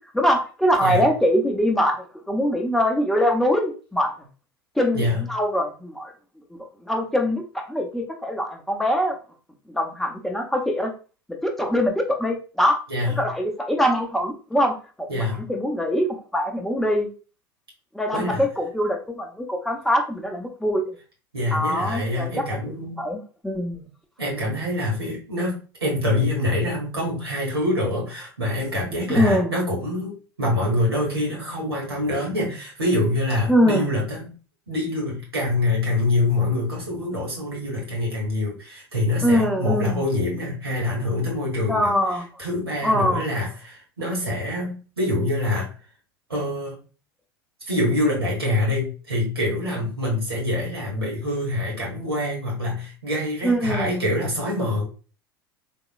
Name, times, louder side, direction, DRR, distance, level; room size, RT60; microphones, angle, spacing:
voice 1, 0.1-4.1 4.8-6.1 6.8-9.2 9.7-10.9 11.4-12.8 13.2-17.1 17.9-20.9 21.5-23.8 29.1-29.5 33.5-33.8 39.2-40.0 41.7-42.3 42.8-43.2 53.4-53.9, equal, ahead, 2 dB, 0.7 m, -23 dB
voice 2, 12.9-13.3 15.1-15.4 18.1-18.4 21.3-23.0 24.2-34.3 34.7-41.9 42.4-45.7 46.3-46.8 47.6-54.8, left 1 dB, 85° right, -3 dB, 1.5 m, -25 dB
3.7 x 2.9 x 2.3 m, 0.36 s
figure-of-eight pair, 80°, 13 cm